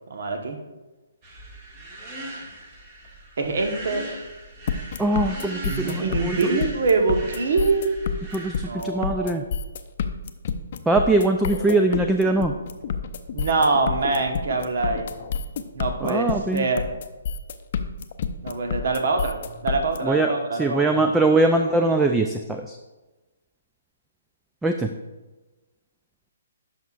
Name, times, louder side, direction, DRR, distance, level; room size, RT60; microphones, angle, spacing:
voice 1, 0.1-0.6 3.4-4.1 5.6-7.9 8.7-9.4 13.3-15.1 15.7-16.9 18.4-21.0, right 3 dB, 65° right, 4 dB, 1.2 m, -24 dB
sound 1, 1.2-8.7, right 1 dB, 30° right, 1.8 m, -39 dB
sound 2, 4.7-20.0, left 6 dB, 50° left, 0.5 m, -29 dB
voice 2, 5.0-6.6 8.3-9.4 10.9-12.5 16.0-16.7 20.0-22.8 24.6-24.9, right 2 dB, 5° right, 4 dB, 0.3 m, -22 dB
10.5 x 5.7 x 2.5 m, 1.2 s
hypercardioid pair, 150°, 0 cm